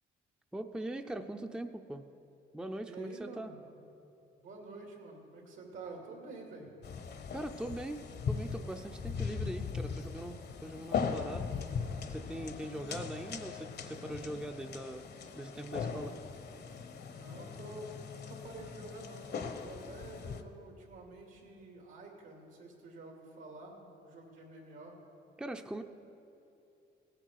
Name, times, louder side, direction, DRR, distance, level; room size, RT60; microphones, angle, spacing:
voice 1, 0.5-2.0 2.5-3.5 7.3-11.5 12.1-15.1 15.4-16.1 25.4-25.8, right 1 dB, 5° right, 7 dB, 0.5 m, -41 dB
voice 2, 2.8-3.6 4.4-6.7 17.0-25.0, right 2 dB, 80° right, 0 dB, 2.8 m, -49 dB
sound 1, 6.8-20.4, left 6 dB, 55° left, 0.9 m, -39 dB
17.5 x 8.8 x 4.7 m, 2.8 s
cardioid pair, 90°, 20 cm